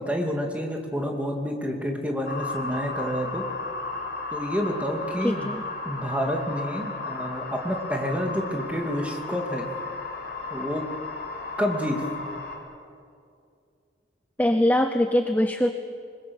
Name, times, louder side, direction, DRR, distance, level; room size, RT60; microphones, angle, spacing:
voice 1, 0.0-3.4 4.3-5.5 5.8-9.7 10.5-10.8 11.6-12.3, equal, 10° right, 1 dB, 2.5 m, -29 dB
sound 1, 2.2-12.6, left 3 dB, 55° left, 4.0 m, -34 dB
voice 2, 5.2-5.6 14.4-15.7, left 1 dB, 10° left, 7 dB, 0.7 m, -22 dB
25.5 x 21.0 x 7.1 m, 2.3 s
head